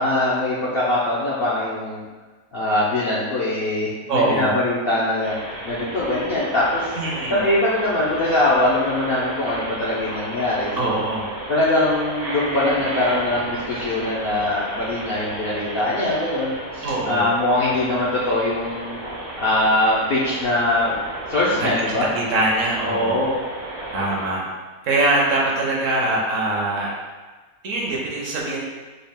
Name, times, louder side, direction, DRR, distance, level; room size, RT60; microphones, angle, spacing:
voice 1, 0.0-2.0 2.5-6.9 7.3-11.0 11.5-19.0 19.4-20.9 21.3-22.1 22.8-23.3, left 1 dB, 60° left, -8 dB, 0.6 m, -22 dB
voice 2, 4.1-4.5 7.0-7.4 10.8-11.3 16.8-17.2 21.6-23.2 23.9-24.5 24.8-26.9 27.6-28.6, right 2 dB, 65° right, -3 dB, 1.0 m, -23 dB
sound 1, 5.2-24.3, right 1 dB, 80° right, 1.6 m, -33 dB
4.0 x 2.3 x 3.5 m, 1.3 s
omnidirectional pair, 1.6 m